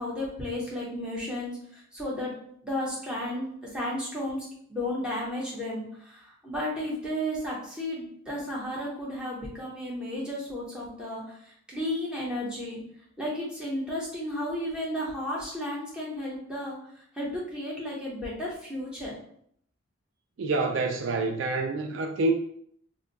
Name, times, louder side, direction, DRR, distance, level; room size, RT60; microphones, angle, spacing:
voice 1, 0.0-2.3 2.6-3.5 3.7-12.8 13.2-16.8 17.1-19.1, left 1 dB, 5° right, -6 dB, 0.8 m, -33 dB
voice 2, 20.4-22.3, right 3 dB, 65° right, 4 dB, 0.3 m, -27 dB
2.6 x 2.2 x 3.9 m, 0.66 s
head